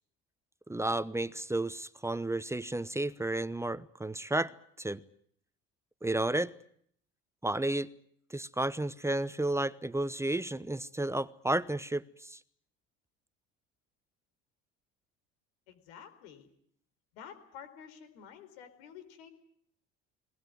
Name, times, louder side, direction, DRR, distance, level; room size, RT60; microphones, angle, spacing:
voice 1, 0.7-4.5 4.8-5.0 6.0-6.5 7.4-7.9 8.3-12.4, right 2 dB, 10° right, 15 dB, 1.0 m, -32 dB
voice 2, 15.7-16.5 17.1-19.3, left 8 dB, 90° left, 10 dB, 4.4 m, -50 dB
22.0 x 20.0 x 9.5 m, 0.65 s
supercardioid pair, 85°, 29 cm